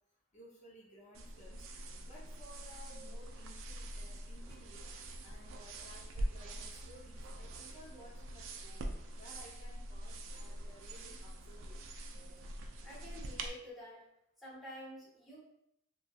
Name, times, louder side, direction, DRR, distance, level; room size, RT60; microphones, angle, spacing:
voice 1, 0.3-1.6 2.0-4.8 5.2-8.8 9.1-11.8, equal, 40° left, -6 dB, 0.6 m, -57 dB
sound 1, 1.1-13.5, right 1 dB, 80° right, 0.3 m, -44 dB
voice 2, 12.8-14.0 14.4-15.4, equal, ahead, -8 dB, 0.8 m, -49 dB
2.7 x 2.3 x 2.3 m, 0.79 s
head